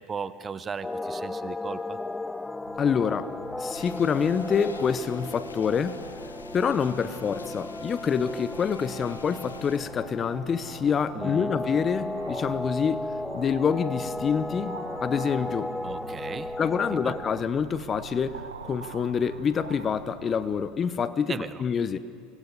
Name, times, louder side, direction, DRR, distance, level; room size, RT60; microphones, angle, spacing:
voice 1, 0.0-2.0 11.2-11.5 15.8-16.5 17.0-17.1 21.3-21.5, right 6 dB, 25° right, 15 dB, 0.8 m, -36 dB
sound 1, 0.8-17.5, left 2 dB, 10° left, 0.4 m, -35 dB
sound 2, 2.6-20.7, right 5 dB, 85° right, 1.1 m, -46 dB
voice 2, 2.8-3.3 3.6-6.0 6.5-13.1 13.3-15.7 16.6-22.0, left 6 dB, 30° left, 14 dB, 0.9 m, -27 dB
sound 3, 3.7-9.8, left 5 dB, 90° left, 1.1 m, -48 dB
28.0 x 24.5 x 4.1 m, 2.4 s
hypercardioid pair, 75°, 0 cm